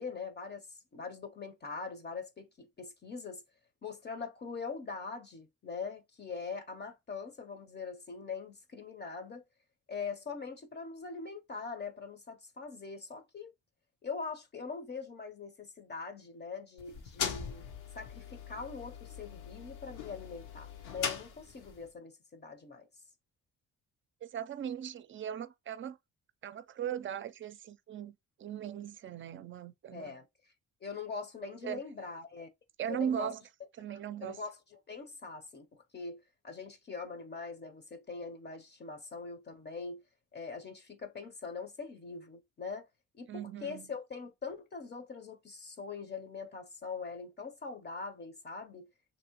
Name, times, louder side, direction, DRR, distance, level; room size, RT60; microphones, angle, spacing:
voice 1, 0.0-3.4 3.8-9.4 9.9-13.5 14.0-17.6 17.9-22.9 29.9-30.3 30.8-32.5 32.9-33.3 33.9-40.0 40.3-42.9 43.1-48.9, left 5 dB, 35° left, 0.7 m, -42 dB
sound 1, 16.8-21.9, left 7 dB, 90° left, 1.0 m, -40 dB
voice 2, 24.2-26.0 26.4-30.1 31.6-31.8 32.8-33.4 33.8-34.4 43.3-43.9, right 9 dB, 40° right, 0.5 m, -38 dB
3.0 x 2.7 x 2.9 m
cardioid pair, 90°, 30 cm